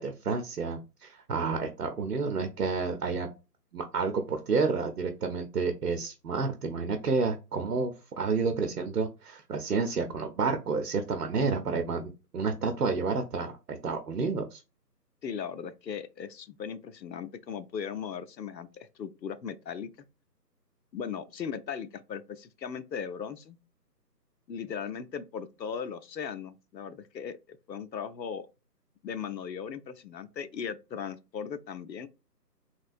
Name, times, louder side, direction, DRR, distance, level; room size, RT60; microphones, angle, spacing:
voice 1, 0.0-3.3 3.7-14.6, right 4 dB, 60° right, 0.7 m, -30 dB
voice 2, 15.2-19.9 20.9-23.6 24.5-28.5 29.0-32.1, left 7 dB, 85° left, 0.6 m, -38 dB
3.2 x 2.5 x 2.4 m
figure-of-eight pair, 150°, 50 cm